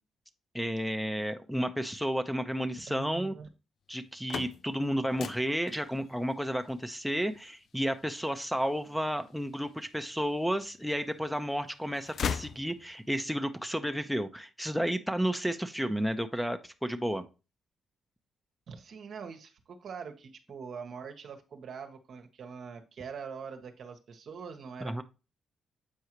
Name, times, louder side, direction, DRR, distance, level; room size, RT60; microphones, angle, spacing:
voice 1, 0.5-3.3 3.9-17.2 24.8-25.0, equal, ahead, 6 dB, 0.9 m, -32 dB
voice 2, 2.9-3.5 18.7-25.0, right 6 dB, 65° right, 6 dB, 1.1 m, -43 dB
sound 1, 4.0-9.9 10.5-11.3 11.6-13.2, left 7 dB, 65° left, 0.4 m, -40 dB
8.0 x 4.7 x 3.1 m, 0.30 s
supercardioid pair, 55°, 0 cm